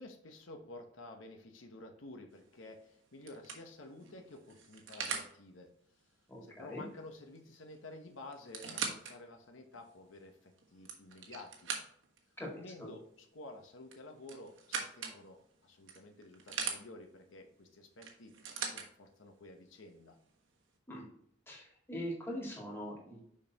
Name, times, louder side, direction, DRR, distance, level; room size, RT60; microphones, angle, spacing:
voice 1, 0.0-5.7 6.4-11.7 12.5-18.3 18.6-20.2, left 2 dB, 85° left, 4 dB, 1.0 m, -51 dB
lock unlock door, 2.4-2.7 3.3-5.3 7.4-7.5 7.7-7.8 8.3-9.1 9.7-9.8 10.6-12.2 13.9-15.2 15.9-16.8 18.0-18.9 19.8-19.9, right 6 dB, 75° right, 1.3 m, -40 dB
voice 2, 6.3-6.8 12.4-12.5 12.8-12.9 20.9-21.0 21.5-23.2, equal, 10° left, -3 dB, 2.0 m, -42 dB
6.5 x 5.4 x 2.9 m, 0.69 s
head